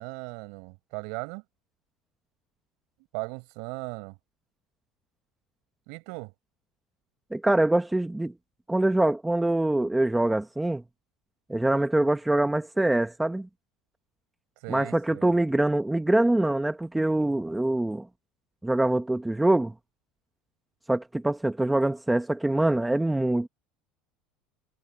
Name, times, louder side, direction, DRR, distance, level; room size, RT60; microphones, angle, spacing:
voice 1, 0.0-1.4 3.1-4.2 5.9-6.3 14.6-15.3, right 32 dB, 70° right, 6.9 m, -37 dB
voice 2, 7.3-8.3 8.7-10.8 11.5-13.5 14.7-18.1 18.6-19.7 20.9-23.5, right 1 dB, 5° right, 1.0 m, -24 dB
cardioid pair, 150°, 0 cm